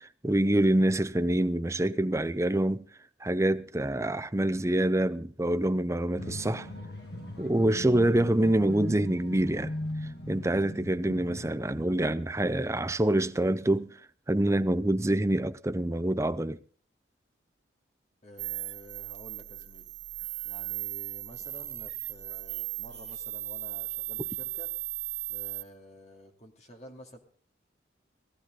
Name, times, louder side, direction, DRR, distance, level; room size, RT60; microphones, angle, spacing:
voice 1, 0.0-2.9 3.2-6.7 7.4-9.7 10.3-13.9 14.3-16.6, right 1 dB, 15° right, 0.6 m, -26 dB
sound 1, 6.2-12.6 12.9-13.0, equal, 60° left, 6.3 m, -39 dB
voice 2, 18.2-19.9 20.4-24.7 25.3-27.2, equal, 35° left, 2.8 m, -51 dB
sound 2, 18.4-25.6, right 15 dB, 70° right, 1.5 m, -37 dB
19.0 x 14.0 x 3.9 m
head